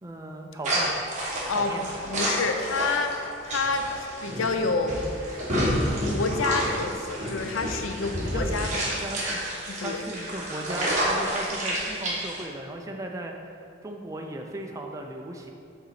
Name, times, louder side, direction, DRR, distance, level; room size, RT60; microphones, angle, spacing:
voice 1, 0.0-0.9 1.5-1.8 8.2-9.4 9.8-13.3 13.8-15.5, right 1 dB, 15° right, 2 dB, 0.4 m, -36 dB
sound 1, 0.6-12.4, equal, 35° right, 1.4 m, -29 dB
voice 2, 1.5-5.0 6.0-8.9 9.7-10.0, left 4 dB, 85° left, 6 dB, 0.5 m, -28 dB
5.5 x 4.0 x 5.7 m, 2.5 s
head